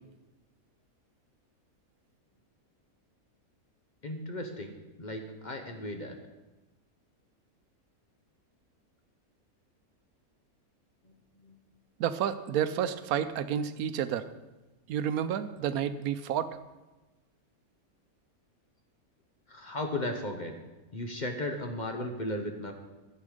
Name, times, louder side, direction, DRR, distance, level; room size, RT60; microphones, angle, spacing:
voice 1, 4.0-6.2 11.4-11.6 19.5-20.5 20.9-22.7, left 1 dB, 35° left, 4 dB, 1.0 m, -36 dB
voice 2, 12.0-14.3 14.9-16.6, right 9 dB, 80° right, 12 dB, 1.1 m, -30 dB
12.0 x 8.0 x 4.9 m, 1.1 s
omnidirectional pair, 1.5 m